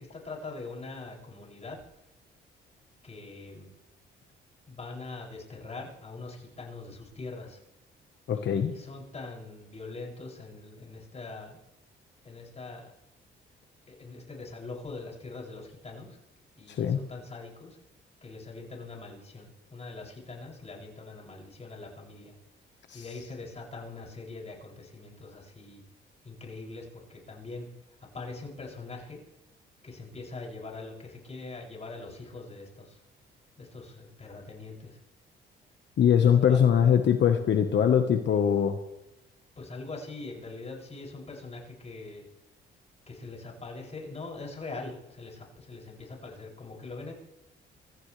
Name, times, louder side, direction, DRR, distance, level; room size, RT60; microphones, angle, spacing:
voice 1, 0.0-1.8 3.0-3.7 4.7-7.6 8.3-11.6 12.2-12.9 13.9-16.2 16.6-17.8 18.2-22.3 22.9-25.8 26.2-27.7 28.0-29.2 29.8-33.0 33.6-35.0 36.2-36.6 39.6-42.2 43.1-47.1, left 3 dB, 35° left, -2 dB, 7.1 m, -42 dB
voice 2, 8.3-8.7 16.7-17.0 22.9-23.0 36.0-38.8, left 8 dB, 65° left, 6 dB, 1.4 m, -22 dB
25.5 x 15.0 x 3.4 m, 0.93 s
cardioid pair, 90°, 20 cm